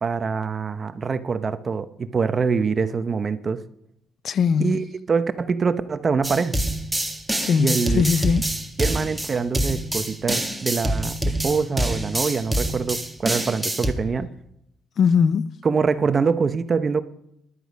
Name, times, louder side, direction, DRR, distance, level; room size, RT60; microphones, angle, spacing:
voice 1, 0.0-3.6 4.6-6.6 7.6-8.0 8.8-14.3 15.6-17.0, right 5 dB, 40° right, 0.7 m, -24 dB
voice 2, 4.2-4.7 7.4-8.5 15.0-15.5, left 6 dB, 60° left, 0.5 m, -20 dB
sound 1, 6.2-13.9, right 1 dB, 5° right, 1.8 m, -26 dB
13.5 x 11.5 x 5.2 m
cardioid pair, 90°, 0 cm